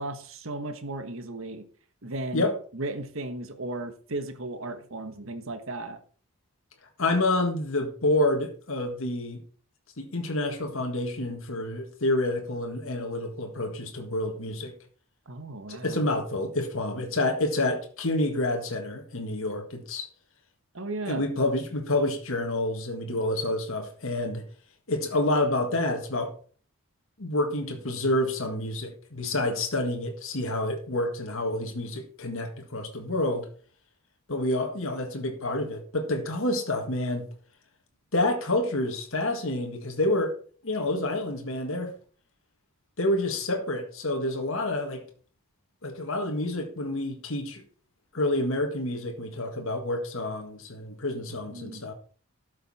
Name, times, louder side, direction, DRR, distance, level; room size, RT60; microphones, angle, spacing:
voice 1, 0.0-1.6 2.0-6.0 15.3-16.0 20.7-21.2 51.3-51.8, right 2 dB, 65° right, 1.3 m, -35 dB
voice 2, 7.0-9.4 10.0-14.7 15.7-20.1 21.1-24.4 24.9-26.3 27.2-33.5 34.3-37.3 38.1-40.3 40.6-41.9 43.0-45.0 45.8-47.6 48.1-51.9, left 1 dB, 65° left, 1.8 m, -28 dB
12.5 x 6.5 x 4.3 m
head